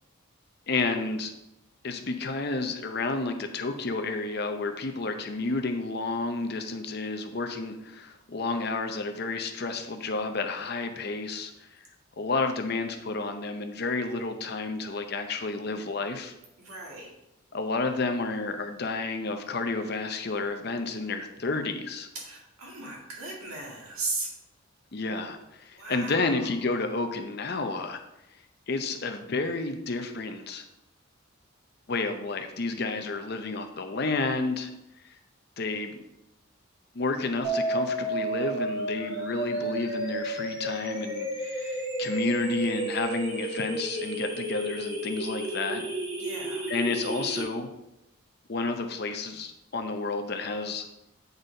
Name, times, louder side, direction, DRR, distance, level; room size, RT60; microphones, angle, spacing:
voice 1, 0.7-1.3 1.8-11.7 12.2-16.3 17.5-22.1 24.9-28.0 28.7-30.6 31.9-34.7 35.0-35.1 35.6-36.0 36.9-45.9 46.7-47.7 48.5-50.8, left 3 dB, 50° left, 6 dB, 0.6 m, -31 dB
voice 2, 16.6-17.1 22.1-24.3 25.7-26.5 46.2-46.7, right 3 dB, 85° right, -2 dB, 2.0 m, -37 dB
sound 1, 37.4-47.4, right 1 dB, 55° right, 2.0 m, -32 dB
8.1 x 4.0 x 3.9 m, 0.90 s
head